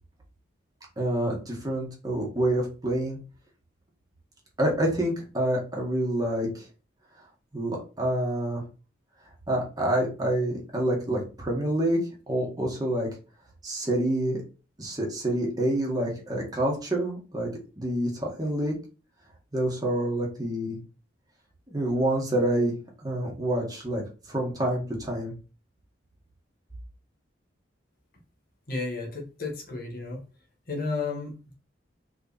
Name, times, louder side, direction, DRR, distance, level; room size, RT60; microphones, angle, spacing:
voice 1, 1.0-3.2 4.6-6.7 7.5-8.6 9.5-12.0 12.3-13.1 13.6-14.4 14.8-17.5 17.8-18.7 19.5-20.8 21.7-22.8 23.0-24.0 24.3-25.3, right 1 dB, 20° right, -2 dB, 2.0 m, -27 dB
voice 2, 28.7-30.2 30.7-31.5, left 3 dB, 50° left, 0 dB, 1.7 m, -33 dB
4.8 x 4.7 x 4.3 m, 0.34 s
head